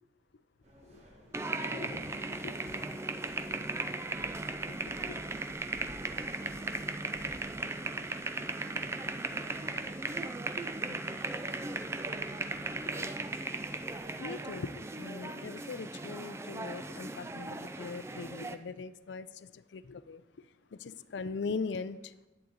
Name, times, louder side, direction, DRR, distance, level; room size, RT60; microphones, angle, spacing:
sound 1, 0.6-14.6, right 1 dB, 40° right, 1.6 m, -57 dB
sound 2, 1.3-18.6, right 2 dB, 15° right, 0.4 m, -37 dB
voice 1, 1.6-2.8 4.7-5.2 10.8-11.0 14.2-14.7 15.0-20.2 20.8-22.1, left 4 dB, 80° left, 14 dB, 0.4 m, -41 dB
sound 3, 2.6-7.6, left 1 dB, 10° left, 1.9 m, -56 dB
10.5 x 8.4 x 4.0 m, 1.1 s
head